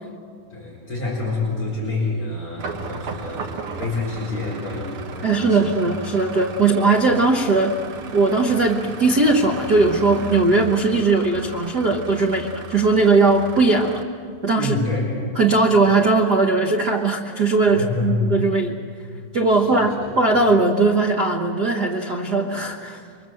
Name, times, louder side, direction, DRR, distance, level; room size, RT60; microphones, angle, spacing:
voice 1, 0.5-5.6 14.6-15.1 17.7-18.2 19.5-19.9, left 3 dB, 40° left, -4 dB, 5.3 m, -27 dB
sound 1, 2.6-14.0, right 4 dB, 55° right, 1.7 m, -35 dB
voice 2, 5.2-7.8 8.1-14.0 14.4-14.8 15.4-18.8 19.3-23.0, right 3 dB, 70° right, 3 dB, 0.9 m, -19 dB
26.5 x 23.5 x 7.8 m, 2.3 s
omnidirectional pair, 3.7 m